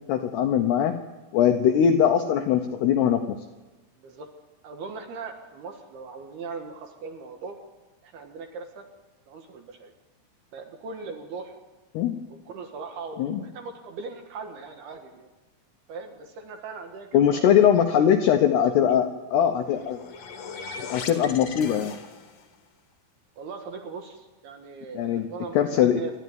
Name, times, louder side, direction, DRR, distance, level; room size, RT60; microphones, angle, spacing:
voice 1, 0.1-0.9 1.3-3.4 11.9-12.2 13.2-13.4 17.1-20.0 20.8-22.0 24.9-25.3 25.5-26.0, left 9 dB, 80° left, 6 dB, 2.4 m, -21 dB
voice 2, 4.0-4.3 4.6-7.6 8.0-8.9 9.3-9.9 10.5-11.5 12.3-15.3 15.9-17.6 18.5-18.8 23.4-26.1, right 4 dB, 65° right, 4 dB, 2.8 m, -39 dB
sound 1, 19.5-22.5, left 5 dB, 55° left, 1.8 m, -39 dB
27.0 x 12.5 x 9.3 m, 1.2 s
omnidirectional pair, 5.9 m